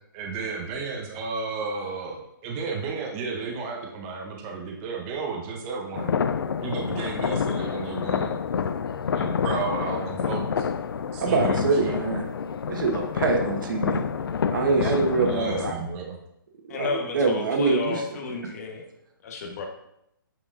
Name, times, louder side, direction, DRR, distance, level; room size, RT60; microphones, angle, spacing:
voice 1, 0.1-6.1 6.6-8.4 9.1-10.7 11.1-12.0 14.7-16.2, right 4 dB, 20° right, 1 dB, 0.7 m, -33 dB
sound 1, 5.9-15.7, left 6 dB, 80° left, 0.4 m, -28 dB
voice 2, 11.2-12.3 12.7-14.0 14.5-15.8 16.7-18.2, right 4 dB, 60° right, 2 dB, 1.4 m, -25 dB
voice 3, 16.7-18.8 19.2-19.7, left 3 dB, 45° left, 2 dB, 1.2 m, -31 dB
8.8 x 4.6 x 2.6 m, 0.79 s
hypercardioid pair, 155°, 12 cm